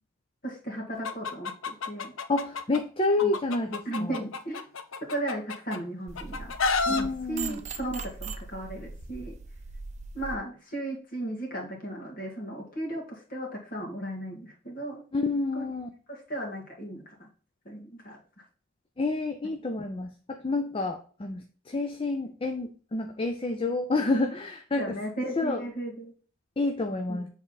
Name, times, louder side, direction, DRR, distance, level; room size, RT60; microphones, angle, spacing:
voice 1, 0.4-2.1 3.2-3.3 3.8-4.6 5.0-9.4 10.1-15.0 15.5-15.6 16.1-17.3 17.7-18.2 24.8-26.1 27.1-27.3, right 1 dB, 40° left, 0 dB, 2.0 m, -36 dB
Chicken rooster, 1.0-2.8 3.2-5.8 6.2-7.0, left 4 dB, 65° left, 0.6 m, -30 dB
voice 2, 2.3-4.1 6.9-7.6 15.1-15.9 19.0-25.0 25.4-25.6 26.6-27.3, left 2 dB, 25° left, 6 dB, 0.4 m, -29 dB
sound 1, 6.1-10.4, right 4 dB, 35° right, 0.6 m, -40 dB
7.6 x 3.6 x 4.0 m, 0.41 s
head